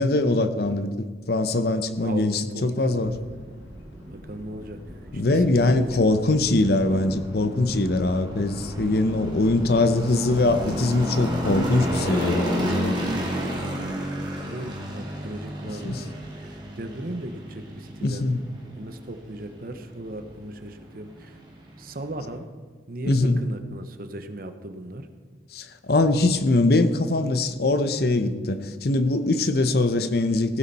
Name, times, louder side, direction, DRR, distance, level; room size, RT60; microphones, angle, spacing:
voice 1, 0.0-3.1 5.1-13.0 15.8-16.0 18.0-18.4 23.0-23.4 25.5-30.6, left 2 dB, 60° left, 10 dB, 0.8 m, -22 dB
voice 2, 2.0-3.2 4.1-4.8 5.1-6.1 6.6-6.7 14.0-14.2 14.5-18.3 18.8-21.4 21.8-22.5 22.9-25.1, right 1 dB, 50° right, 8 dB, 1.0 m, -37 dB
sound 1, 3.0-12.1, equal, 75° left, 2.2 m, -44 dB
sound 2, 3.0-22.4, equal, 25° right, 2.5 m, -33 dB
16.0 x 9.9 x 4.2 m, 1.5 s
head